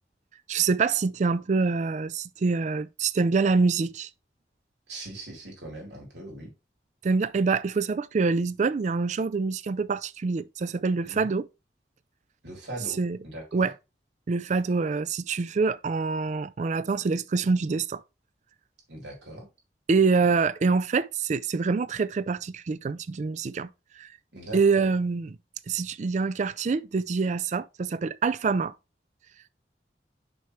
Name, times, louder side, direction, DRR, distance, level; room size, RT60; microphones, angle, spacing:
voice 1, 0.5-4.1 7.0-11.5 13.0-13.2 13.5-13.7 14.3-18.0 19.9-23.7 24.0-24.1 24.5-25.4 25.7-28.7, right 4 dB, 40° right, 0.4 m, -25 dB
voice 2, 4.9-6.5 11.0-11.3 12.4-13.0 13.2-13.7 18.9-19.5 20.3-20.4 24.3-24.9, right 1 dB, 85° right, 3.5 m, -40 dB
6.3 x 5.7 x 3.1 m
head